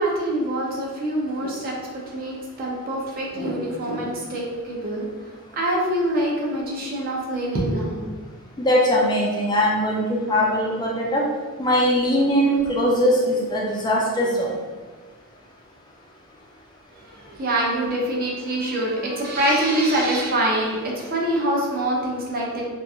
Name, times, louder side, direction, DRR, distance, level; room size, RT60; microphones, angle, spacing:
voice 1, 0.0-5.1 5.5-8.0 17.1-22.7, right 1 dB, 45° right, -2 dB, 0.6 m, -25 dB
voice 2, 8.6-11.3 11.6-14.5, equal, 20° left, -4 dB, 0.3 m, -21 dB
2.8 x 2.4 x 2.3 m, 1.4 s
head